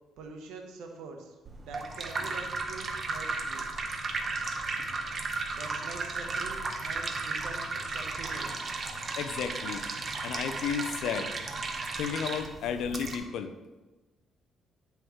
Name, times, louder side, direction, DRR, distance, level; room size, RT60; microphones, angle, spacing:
voice 1, 0.2-1.4 1.6-3.6 5.5-8.5, right 4 dB, 90° right, 3 dB, 1.0 m, -44 dB
sound 1, 1.4-13.2, right 3 dB, 45° right, 0.9 m, -34 dB
voice 2, 9.2-9.8 10.2-11.3 12.0-13.5, left 7 dB, 85° left, 9 dB, 0.6 m, -33 dB
9.4 x 5.7 x 3.2 m, 1.2 s
cardioid pair, 90°, 0 cm